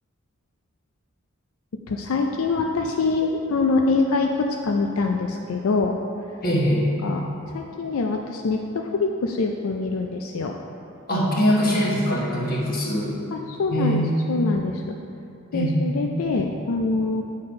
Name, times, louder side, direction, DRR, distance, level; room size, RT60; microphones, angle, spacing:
voice 1, 1.9-5.9 7.0-7.2 7.5-10.5 13.3-14.0 14.3-14.9 15.5-17.2, left 3 dB, 75° left, 2 dB, 0.4 m, -24 dB
voice 2, 6.4-6.8 11.1-13.1 13.7-14.3 15.5-15.9, equal, 40° left, -4 dB, 1.3 m, -22 dB
8.6 x 4.1 x 5.2 m, 2.7 s
head